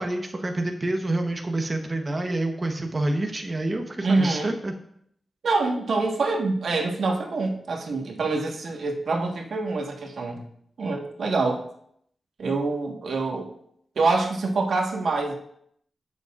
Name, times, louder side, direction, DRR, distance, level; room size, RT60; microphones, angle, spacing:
voice 1, 0.0-4.7, right 2 dB, 30° right, 3 dB, 1.0 m, -27 dB
voice 2, 4.0-4.5 5.4-10.4 10.8-11.7 12.4-13.5 13.9-15.3, right 3 dB, 85° right, 1 dB, 1.4 m, -25 dB
14.5 x 6.8 x 2.5 m, 0.70 s
wide cardioid pair, 95°, 0 cm